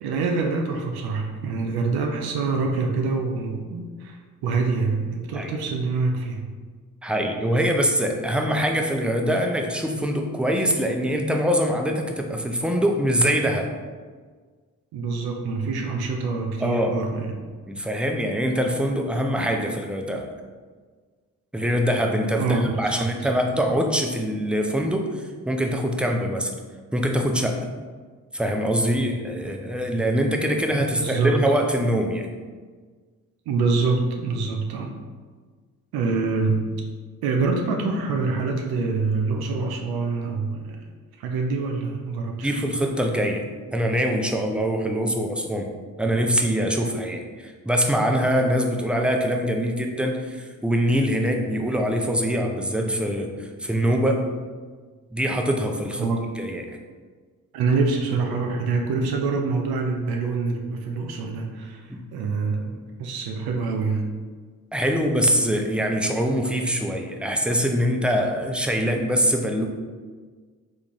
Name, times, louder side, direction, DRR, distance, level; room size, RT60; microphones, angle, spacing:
voice 1, 0.0-4.2 4.4-6.4 14.9-17.3 22.4-23.1 30.7-31.4 33.5-34.9 35.9-36.7 37.2-40.8 41.2-42.5 56.0-56.2 57.5-61.8 62.1-64.1, right 4 dB, 80° right, 2 dB, 0.5 m, -25 dB
voice 2, 7.0-13.7 16.6-17.0 17.7-20.3 21.5-26.5 26.9-27.6 28.3-32.3 42.4-43.4 43.7-54.3 55.1-56.7 61.9-62.0 64.7-69.7, equal, 5° right, 2 dB, 0.5 m, -23 dB
3.6 x 2.5 x 3.0 m, 1.5 s
supercardioid pair, 50°, 37 cm